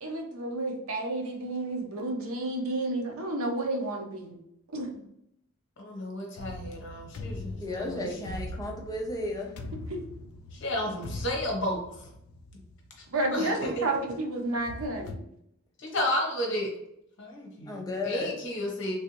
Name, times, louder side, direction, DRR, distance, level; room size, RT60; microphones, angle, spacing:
voice 1, 0.0-4.4 4.7-4.9 9.9-10.0 13.1-15.3, right 2 dB, 70° right, 2 dB, 0.7 m, -31 dB
voice 2, 5.8-8.2 10.5-12.1 13.3-13.9 15.8-16.7 17.2-18.9, left 1 dB, 55° left, 0 dB, 0.9 m, -32 dB
sound 1, 6.4-13.3 13.8-13.9 14.5-15.2, left 2 dB, 75° left, 0.3 m, -41 dB
voice 3, 7.6-9.5 17.7-18.3, left 2 dB, 15° left, 0 dB, 0.5 m, -33 dB
3.3 x 2.5 x 2.9 m, 0.75 s
head